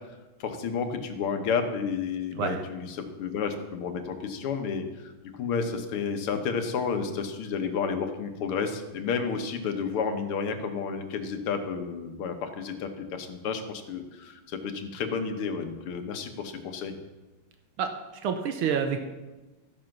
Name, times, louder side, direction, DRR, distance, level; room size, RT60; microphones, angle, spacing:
voice 1, 0.4-17.0, left 5 dB, 80° left, 7 dB, 2.0 m, -31 dB
voice 2, 18.2-19.1, right 7 dB, 85° right, 6 dB, 1.8 m, -28 dB
13.5 x 7.7 x 5.9 m, 1.1 s
omnidirectional pair, 2.4 m